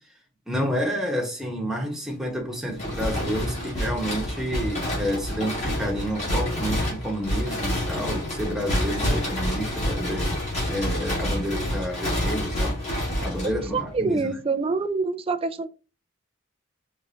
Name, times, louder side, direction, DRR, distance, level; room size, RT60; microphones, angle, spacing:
voice 1, 0.5-10.3 10.7-12.8 13.2-14.3, equal, ahead, 1.2 m, -29 dB
sound 1, 2.8-14.0, left 1 dB, 35° left, 2.1 m, -28 dB
voice 2, 13.7-15.7, right 4 dB, 30° right, 0.4 m, -26 dB
4.8 x 3.6 x 2.8 m
head